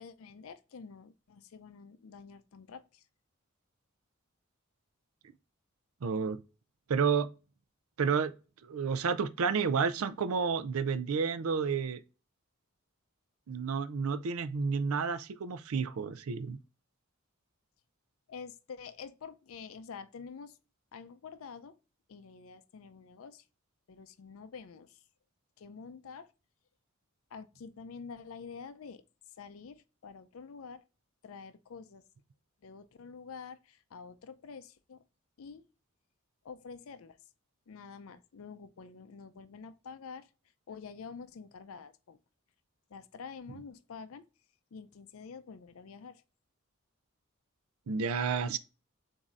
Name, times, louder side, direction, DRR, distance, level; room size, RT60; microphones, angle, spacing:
voice 1, 0.0-3.0 18.3-20.6 20.9-21.8 22.1-23.4 23.9-25.0 25.6-26.3 27.3-29.0 29.4-30.8 31.2-32.0 32.6-35.0 35.4-35.6 36.4-37.2 37.7-40.3 40.7-42.2 42.9-44.2 44.7-46.2, left 5 dB, 75° left, 0.4 m, -47 dB
voice 2, 6.0-6.4 6.9-7.3 8.0-8.3 8.6-12.0 13.5-16.6 47.9-48.6, right 5 dB, 85° right, 0.5 m, -30 dB
7.1 x 2.7 x 2.4 m
head